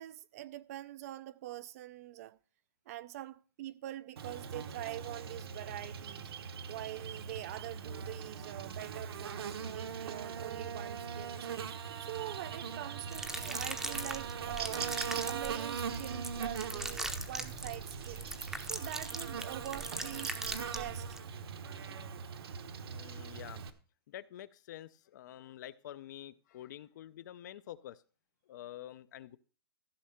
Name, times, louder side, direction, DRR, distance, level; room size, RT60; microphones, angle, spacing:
voice 1, 0.0-2.4 2.9-11.5 12.0-14.9 15.2-18.3 18.6-20.4 20.7-21.2, right 14 dB, 40° right, 0.5 m, -44 dB
Buzz, 4.2-23.7, right 6 dB, 70° right, 1.2 m, -41 dB
sound 1, 13.1-21.2, right 2 dB, 5° right, 0.7 m, -41 dB
voice 2, 22.8-23.6 24.1-28.0 28.5-29.4, left 12 dB, 45° left, 0.6 m, -48 dB
14.5 x 6.3 x 5.8 m
hypercardioid pair, 160°, 13 cm